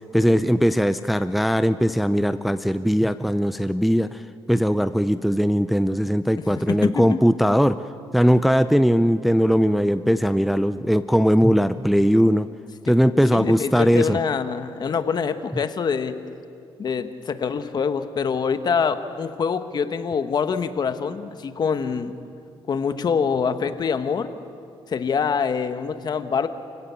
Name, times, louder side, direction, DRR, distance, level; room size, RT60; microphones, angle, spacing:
voice 1, 0.1-4.2 4.5-7.8 8.1-12.5 12.9-14.2, equal, ahead, 11 dB, 0.5 m, -19 dB
voice 2, 6.5-7.2 13.3-16.1 16.8-22.1 22.7-24.3 24.9-26.5, left 6 dB, 45° left, 10 dB, 1.3 m, -25 dB
29.5 x 17.0 x 7.1 m, 2.5 s
cardioid pair, 100°, 9 cm